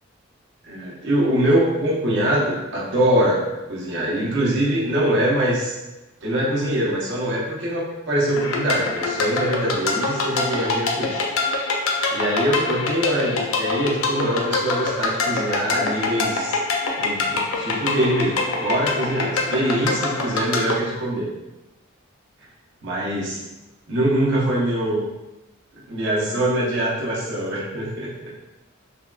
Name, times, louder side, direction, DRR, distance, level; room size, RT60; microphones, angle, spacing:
voice 1, 0.6-5.8 6.2-11.2 12.1-16.6 17.0-21.3 22.8-23.4 23.9-25.1 25.9-28.3, right 1 dB, 55° right, -6 dB, 0.7 m, -23 dB
sound 1, 8.4-20.8, left 3 dB, 70° left, 0.4 m, -25 dB
3.3 x 2.3 x 2.2 m, 1.0 s
head